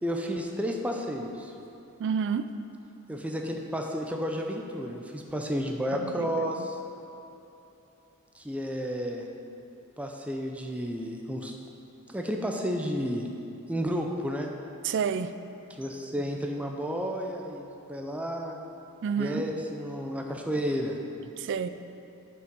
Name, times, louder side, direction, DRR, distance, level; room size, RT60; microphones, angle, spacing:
voice 1, 0.0-1.5 3.1-6.8 8.3-9.3 10.0-11.5 12.1-13.3 13.7-14.5 15.8-18.6 19.2-21.0, equal, 5° right, 1 dB, 0.5 m, -32 dB
voice 2, 2.0-2.5 5.9-6.3 14.8-15.3 19.0-19.4 21.4-21.7, right 6 dB, 55° right, 11 dB, 0.4 m, -29 dB
8.4 x 5.5 x 5.2 m, 3.0 s
head